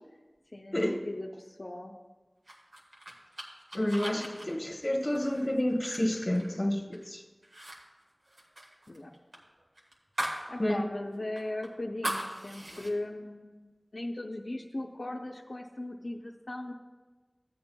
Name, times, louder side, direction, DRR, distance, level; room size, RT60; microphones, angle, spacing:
voice 1, 0.5-2.0 4.1-4.3 8.9-9.1 10.5-16.7, left 1 dB, 65° left, -1 dB, 0.6 m, -38 dB
sound 1, 2.5-7.1 7.4-7.8 8.0-10.5 10.8-10.9 11.4-12.9, right 1 dB, 85° right, 1.4 m, -39 dB
voice 2, 3.7-7.2 10.6-10.8, left 1 dB, 40° left, 2 dB, 1.0 m, -29 dB
15.0 x 8.6 x 2.2 m, 1.3 s
wide cardioid pair, 45°, 0 cm